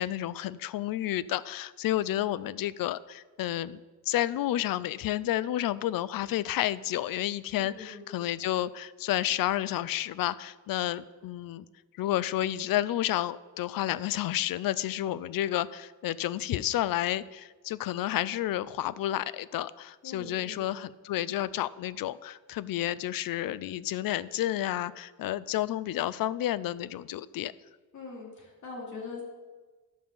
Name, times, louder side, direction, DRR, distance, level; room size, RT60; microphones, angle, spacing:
voice 1, 0.0-11.7 12.0-27.5, left 13 dB, 75° left, 18 dB, 0.5 m, -30 dB
voice 2, 7.6-8.0 20.0-20.6 27.9-29.2, left 4 dB, 55° left, -3 dB, 2.8 m, -42 dB
11.5 x 5.5 x 6.9 m, 1.3 s
cardioid pair, 130°, 35 cm